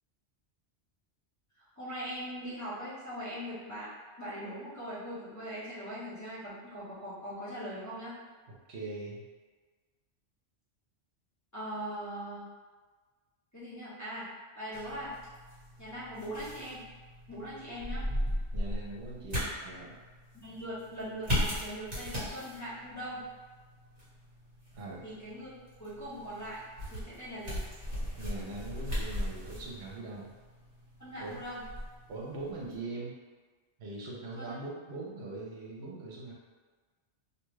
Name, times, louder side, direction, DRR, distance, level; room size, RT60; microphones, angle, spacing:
voice 1, 1.7-3.9 4.2-8.1 11.5-12.5 13.5-14.3 14.5-15.1 15.8-16.8 17.3-18.0 20.4-23.2 25.0-25.5 25.8-26.6 26.9-27.6 31.0-31.6 34.4-34.5, equal, 15° left, -11 dB, 0.9 m, -40 dB
voice 2, 8.7-9.2 18.5-20.0 24.7-25.1 28.2-30.3 31.2-31.4 32.1-33.2 33.8-36.3, right 2 dB, 65° right, -3 dB, 0.9 m, -41 dB
sound 1, 14.7-32.8, equal, 35° right, 1.3 m, -38 dB
2.7 x 2.3 x 3.1 m, 1.4 s
omnidirectional pair, 1.2 m